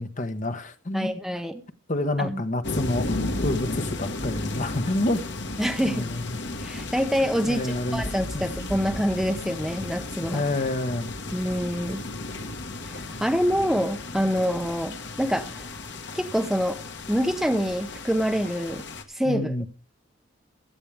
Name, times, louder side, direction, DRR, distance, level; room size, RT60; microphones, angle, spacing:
voice 1, 0.0-1.1 1.9-3.1 3.4-5.2 5.9-6.4 7.4-8.0 8.3-8.4 10.3-11.1 19.2-19.6, left 2 dB, 40° left, 1.2 m, -28 dB
voice 2, 0.9-1.6 2.2-2.4 5.6-6.1 6.6-10.5 11.3-12.0 12.9-15.6 16.1-16.8 17.1-19.5, equal, ahead, 0.8 m, -26 dB
sound 1, 2.6-19.0, left 2 dB, 60° left, 1.7 m, -34 dB
16.0 x 12.0 x 3.4 m
head